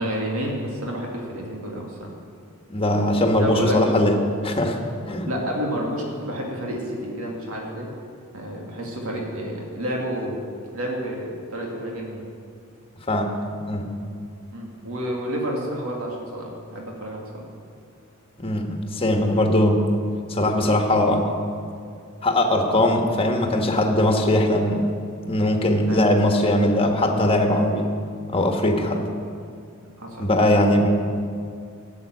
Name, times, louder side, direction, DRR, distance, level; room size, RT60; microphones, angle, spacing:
voice 1, 0.0-2.1 3.4-3.8 5.3-7.9 8.3-10.4 10.7-12.3 14.5-17.4 25.9-26.0 30.0-30.3, equal, 80° right, -1 dB, 2.5 m, -30 dB
voice 2, 2.7-4.2 4.4-4.8 5.1-5.3 13.1-13.4 13.7-13.9 18.4-19.8 20.3-21.4 22.2-24.9 25.3-27.9 28.3-29.0 30.2-30.9, left 1 dB, 25° left, 3 dB, 1.4 m, -20 dB
13.0 x 7.5 x 9.3 m, 2.3 s
head